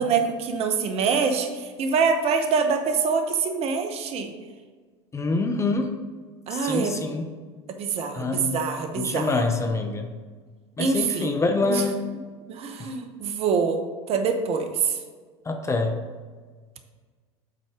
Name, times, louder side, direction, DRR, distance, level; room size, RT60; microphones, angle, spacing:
voice 1, 0.0-4.3 6.5-7.0 7.8-9.4 10.8-11.3 11.7-11.8 12.5-13.8 14.1-15.0, right 5 dB, 45° right, 6 dB, 1.0 m, -25 dB
voice 2, 5.1-5.9 6.5-7.3 8.1-8.6 9.0-10.1 10.8-12.0 12.8-12.9 15.4-16.0, left 3 dB, 20° left, 5 dB, 0.9 m, -26 dB
7.7 x 4.3 x 4.9 m, 1.5 s
hypercardioid pair, 85°, 14 cm